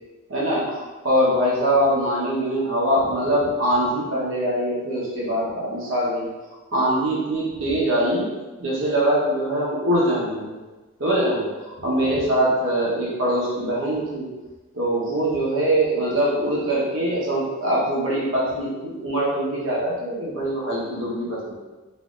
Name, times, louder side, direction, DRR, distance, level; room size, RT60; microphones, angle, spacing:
voice 1, 0.3-6.3 6.7-8.3 8.6-10.6 11.0-14.3 14.7-21.6, right 1 dB, 65° right, -6 dB, 1.1 m, -23 dB
4.2 x 2.7 x 2.4 m, 1.2 s
head